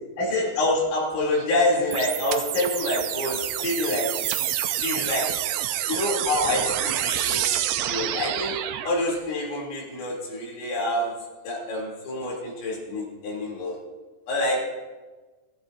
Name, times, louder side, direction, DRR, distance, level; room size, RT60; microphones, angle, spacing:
voice 1, 0.2-4.5 4.8-5.3 5.9-8.5 8.8-11.1 11.4-13.8 14.3-14.6, left 1 dB, 80° left, -3 dB, 6.0 m, -27 dB
sound 1, 1.9-8.9, right 12 dB, 85° right, 3.0 m, -28 dB
23.0 x 14.5 x 2.8 m, 1.3 s
omnidirectional pair, 5.2 m